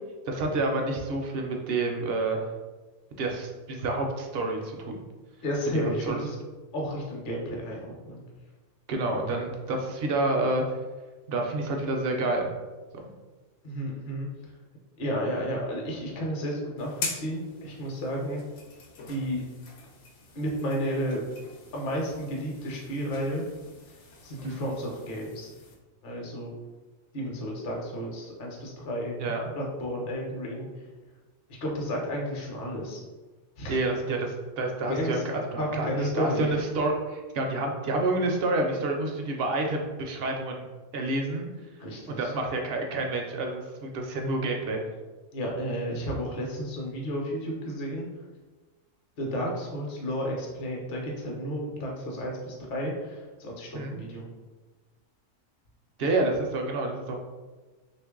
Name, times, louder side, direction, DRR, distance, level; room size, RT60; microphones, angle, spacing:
voice 1, 0.3-2.5 3.2-5.0 5.7-6.2 8.9-10.7 11.3-12.5 24.4-24.6 29.2-29.4 33.7-35.9 36.1-40.7 40.9-41.5 42.1-44.8 53.7-54.0 56.0-57.2, right 2 dB, 60° right, 2 dB, 0.7 m, -28 dB
voice 2, 5.4-6.4 6.7-8.2 13.6-14.5 15.0-18.4 19.1-19.4 20.3-21.2 21.7-23.5 23.9-25.5 26.0-26.5 27.1-30.9 31.6-33.0 33.6-33.8 34.9-35.2 35.6-36.6 41.8-42.3 45.3-48.2 49.2-54.3, equal, 50° left, -2 dB, 0.9 m, -32 dB
sound 1, 16.8-25.8, left 4 dB, 75° left, 1.0 m, -43 dB
3.1 x 2.5 x 3.6 m, 1.3 s
omnidirectional pair, 1.3 m